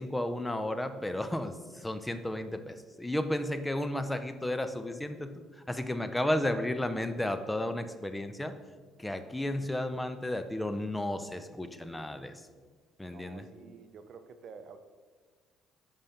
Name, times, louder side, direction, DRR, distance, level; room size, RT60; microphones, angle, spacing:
voice 1, 0.0-8.5 9.0-12.4 13.0-13.5, left 1 dB, 10° left, 9 dB, 0.6 m, -33 dB
voice 2, 13.1-14.8, right 5 dB, 60° right, 9 dB, 0.5 m, -50 dB
5.5 x 5.2 x 4.2 m, 1.5 s
supercardioid pair, 70°, 0 cm